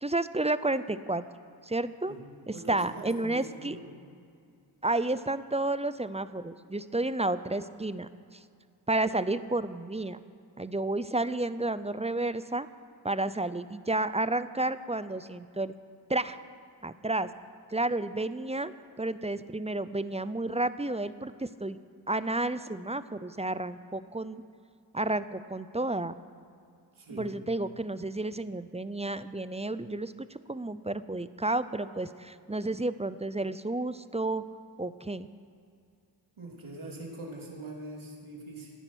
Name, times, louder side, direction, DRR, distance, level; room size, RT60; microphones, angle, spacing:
voice 1, 0.0-1.2 1.6-2.1 2.5-3.8 4.8-8.1 8.9-10.2 10.6-12.7 13.0-15.7 16.1-16.4 16.8-17.3 17.7-18.7 19.0-21.8 22.1-24.4 24.9-26.1 27.1-34.4 34.8-35.3, right 2 dB, 15° right, 14 dB, 0.6 m, -31 dB
voice 2, 2.5-3.9 26.9-27.3 36.4-38.7, right 2 dB, 75° right, -2 dB, 3.4 m, -43 dB
16.0 x 9.7 x 6.4 m, 2.3 s
cardioid pair, 40°, 49 cm